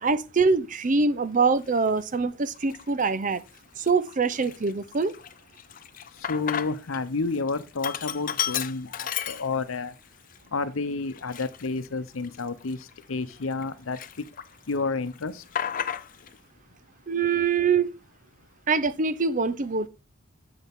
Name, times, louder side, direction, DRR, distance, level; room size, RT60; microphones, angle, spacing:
voice 1, 0.0-3.4 3.8-5.1 17.1-17.9 18.7-19.9, right 4 dB, 40° right, 0.6 m, -24 dB
Sink (filling or washing), 1.7-1.9 2.6-3.1 3.5-3.6 3.9-7.0 7.3-9.9 10.3-10.4 11.1-13.6 13.9-14.7 15.0-16.4, left 9 dB, 40° left, 0.5 m, -33 dB
voice 2, 6.3-9.9 10.5-14.3 14.7-15.4, left 4 dB, 85° left, 0.8 m, -30 dB
8.2 x 7.6 x 3.6 m
head